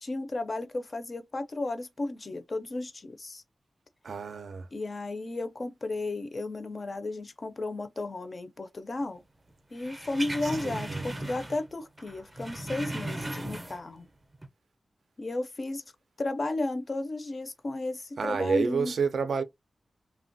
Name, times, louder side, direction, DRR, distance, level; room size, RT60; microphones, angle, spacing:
voice 1, 0.0-3.4 4.7-9.2 9.7-14.1 15.2-15.8 16.2-18.9, left 2 dB, 40° left, 0.4 m, -34 dB
voice 2, 4.0-4.7 10.6-11.0 18.2-19.4, right 5 dB, 75° right, 0.4 m, -29 dB
sound 1, 9.8-11.7 12.0-14.0 14.3-14.5, right 1 dB, 20° right, 0.5 m, -37 dB
3.1 x 2.2 x 2.6 m
wide cardioid pair, 130°, 0 cm